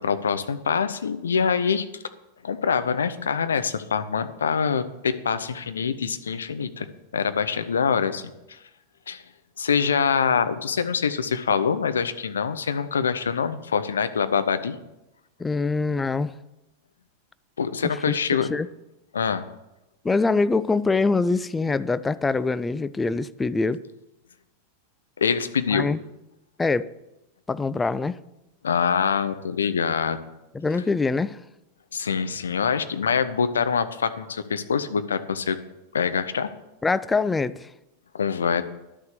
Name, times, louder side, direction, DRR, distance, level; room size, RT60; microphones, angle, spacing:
voice 1, 0.0-2.0 2.4-6.9 7.1-8.2 8.5-8.6 9.1-9.2 9.6-14.8 17.6-18.5 19.1-19.5 25.2-25.9 28.6-30.2 31.9-35.6 35.9-36.5 38.1-38.6, left 6 dB, 70° left, 0.7 m, -24 dB
voice 2, 15.4-16.3 17.8-18.2 18.5-18.7 20.0-23.8 25.7-26.0 26.6-26.9 27.5-28.2 30.5-31.4 36.8-37.7, left 3 dB, 10° left, 0.4 m, -24 dB
11.5 x 6.6 x 6.9 m
figure-of-eight pair, 90°, 0 cm